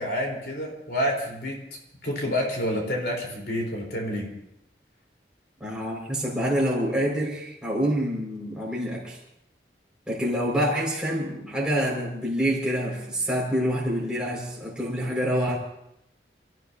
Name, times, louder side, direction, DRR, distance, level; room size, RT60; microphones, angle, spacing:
voice 1, 0.0-1.6 2.0-4.3, equal, 65° left, -1 dB, 4.0 m, -28 dB
voice 2, 5.6-9.2 10.1-15.6, equal, 5° right, -4 dB, 5.3 m, -26 dB
29.0 x 15.0 x 2.8 m, 0.80 s
head